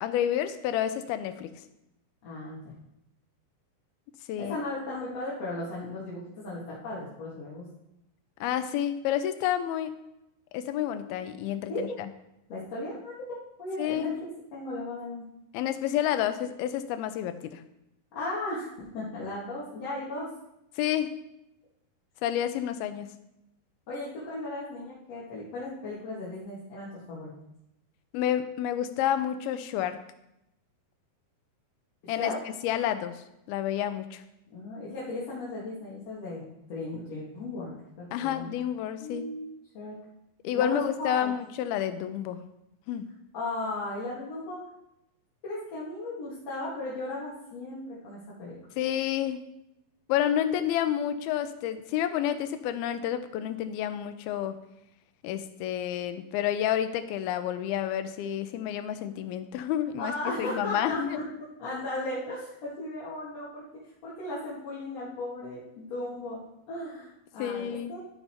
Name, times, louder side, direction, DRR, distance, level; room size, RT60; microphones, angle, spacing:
voice 1, 0.0-1.5 4.3-4.6 8.4-10.0 10.5-11.9 13.8-14.1 15.5-17.6 20.8-21.2 22.2-23.1 28.1-30.0 32.1-32.3 32.6-34.2 38.1-39.2 40.4-42.4 42.9-43.1 48.8-49.5 50.1-54.5 55.2-60.1 60.4-61.2 67.4-68.0, left 10 dB, 85° left, 10 dB, 2.6 m, -29 dB
voice 2, 2.2-2.7 4.4-7.7 11.7-12.0 12.5-14.1 14.5-15.3 18.1-20.3 23.9-27.3 32.0-32.4 34.5-36.4 36.7-37.7 38.0-38.5 39.0-39.5 39.7-40.0 40.5-41.3 43.3-44.6 45.4-48.6 60.0-61.2 61.6-63.6 64.0-66.4 66.7-68.0, left 2 dB, 50° left, -9 dB, 2.8 m, -36 dB
12.5 x 5.5 x 4.4 m, 0.84 s
omnidirectional pair, 4.3 m